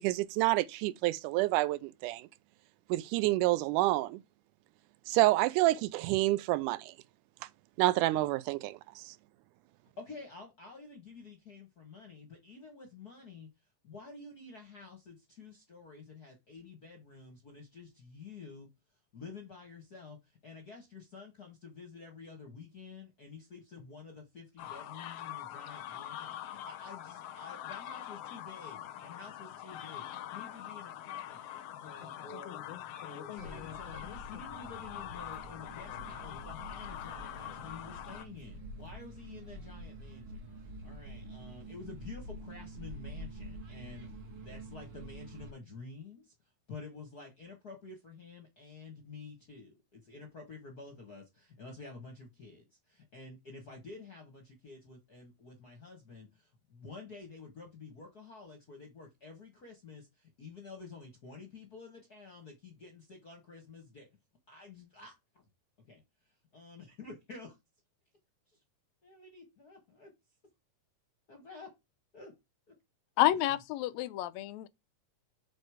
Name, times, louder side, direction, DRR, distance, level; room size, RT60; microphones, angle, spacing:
voice 1, 0.0-2.3 2.9-4.2 5.1-6.9 7.8-9.1, right 18 dB, 80° right, 2.0 m, -28 dB
voice 2, 10.0-13.5 13.8-18.7 19.1-31.4 31.8-32.6 33.0-46.3 46.7-64.1 64.5-65.4 65.8-66.0 66.5-67.5 68.5-68.6 69.0-70.1 71.3-71.7 72.1-72.3 72.7-72.8, left 4 dB, 55° left, 1.1 m, -50 dB
sound 1, 24.6-38.2, left 11 dB, 75° left, 1.4 m, -44 dB
sound 2, 33.4-45.5, right 1 dB, 55° right, 2.8 m, -47 dB
voice 3, 73.2-74.7, left 15 dB, 90° left, 1.5 m, -29 dB
6.5 x 4.2 x 4.8 m
omnidirectional pair, 3.8 m